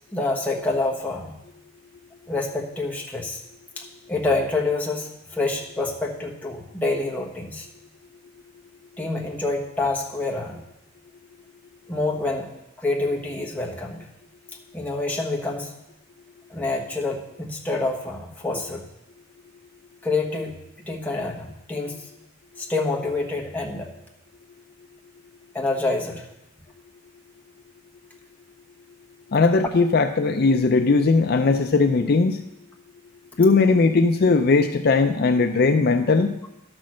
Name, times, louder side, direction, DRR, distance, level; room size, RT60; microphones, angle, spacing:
voice 1, 0.1-1.3 2.3-3.4 3.8-7.7 9.0-10.6 11.9-12.5 12.8-14.1 14.7-15.7 16.5-18.9 20.0-22.1 22.6-23.9 25.5-26.2, left 2 dB, 10° left, -2 dB, 1.2 m, -27 dB
voice 2, 29.3-32.4 33.4-36.3, left 4 dB, 50° left, 7 dB, 0.4 m, -19 dB
11.5 x 6.2 x 6.2 m, 0.89 s
head